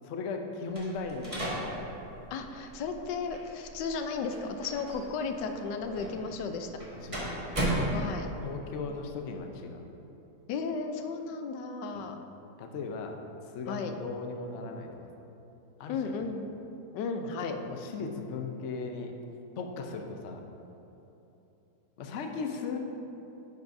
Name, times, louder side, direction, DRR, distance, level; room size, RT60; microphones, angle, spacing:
voice 1, 0.0-1.9 7.0-8.0 8.4-9.9 11.9-12.1 12.6-15.1 15.8-16.2 17.2-19.1 19.6-20.4 22.0-22.8, left 4 dB, 60° left, 4 dB, 0.8 m, -37 dB
sound 1, 0.7-8.5, right 1 dB, 20° right, 1.4 m, -36 dB
voice 2, 2.3-6.8 7.9-8.3 10.5-12.2 13.7-13.9 15.9-16.4 16.9-17.6, left 4 dB, 90° left, 6 dB, 1.2 m, -34 dB
10.0 x 8.1 x 2.6 m, 3.0 s
omnidirectional pair, 1.8 m